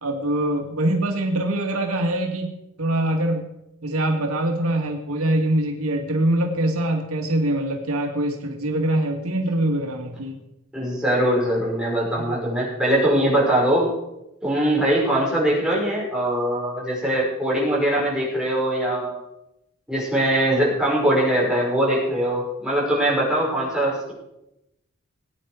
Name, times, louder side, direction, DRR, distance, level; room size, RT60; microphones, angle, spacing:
voice 1, 0.0-2.5 2.8-3.5 3.8-10.4 12.2-12.3, right 1 dB, 90° right, 3 dB, 2.2 m, -23 dB
voice 2, 10.7-13.9 14.4-19.2 19.9-24.1, right 1 dB, 5° right, -5 dB, 5.7 m, -22 dB
20.0 x 9.4 x 5.0 m, 0.89 s
head